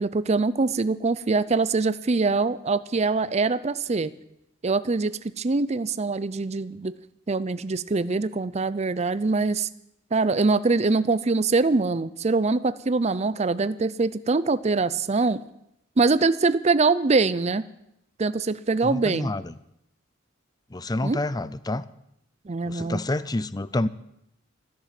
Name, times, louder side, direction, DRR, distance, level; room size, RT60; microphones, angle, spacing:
voice 1, 0.0-4.1 4.6-6.9 7.3-9.7 10.1-15.4 16.0-17.7 18.2-19.3 21.0-21.2 22.5-23.0, right 3 dB, 35° right, 15 dB, 0.5 m, -23 dB
voice 2, 18.8-19.5 20.7-21.8 22.6-23.9, left 2 dB, 20° left, 17 dB, 0.5 m, -28 dB
13.5 x 12.0 x 7.6 m, 0.79 s
head